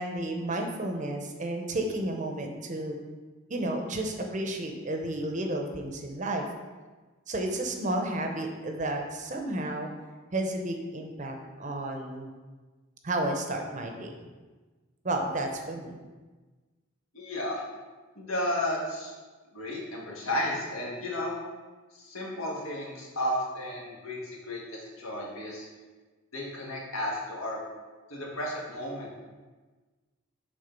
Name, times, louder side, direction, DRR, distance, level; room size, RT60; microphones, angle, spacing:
voice 1, 0.0-3.0 3.5-6.4 7.3-9.9 10.3-12.3 13.0-14.1 15.0-16.0, right 1 dB, 35° right, 3 dB, 0.7 m, -32 dB
voice 2, 17.1-17.6 18.1-19.1 19.5-21.4 21.9-25.7 26.3-27.6 28.1-29.2, left 1 dB, 85° left, -3 dB, 1.7 m, -33 dB
6.8 x 3.7 x 5.3 m, 1.3 s
head